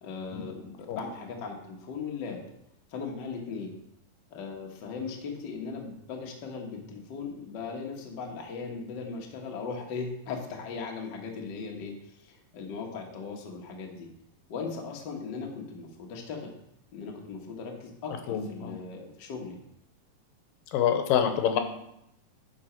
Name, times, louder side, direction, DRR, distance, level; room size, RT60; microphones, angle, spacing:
voice 1, 0.0-2.4 2.9-3.7 4.3-14.1 14.5-16.5 16.9-19.6, left 5 dB, 65° left, 0 dB, 1.1 m, -38 dB
voice 2, 18.3-18.8 20.7-21.6, left 9 dB, 80° left, 6 dB, 2.5 m, -26 dB
10.5 x 5.0 x 4.4 m, 0.78 s
omnidirectional pair, 4.0 m